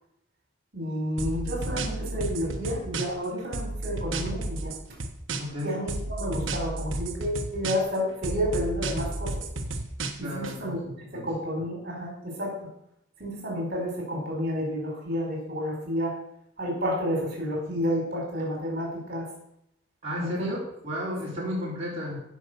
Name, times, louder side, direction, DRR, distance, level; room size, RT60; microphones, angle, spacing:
voice 1, 0.7-4.7 5.6-9.3 10.2-10.8 11.1-12.5 13.2-16.1 16.6-19.3 20.2-20.5 21.4-21.5, equal, 45° right, -2 dB, 4.3 m, -30 dB
sound 1, 1.2-3.3 3.5-5.6 5.9-8.0 8.2-10.5, right 2 dB, 65° right, 1.3 m, -32 dB
voice 2, 5.4-5.7 10.2-11.3 20.0-22.2, left 1 dB, 30° right, -7 dB, 4.2 m, -33 dB
16.0 x 5.4 x 6.8 m, 0.78 s
head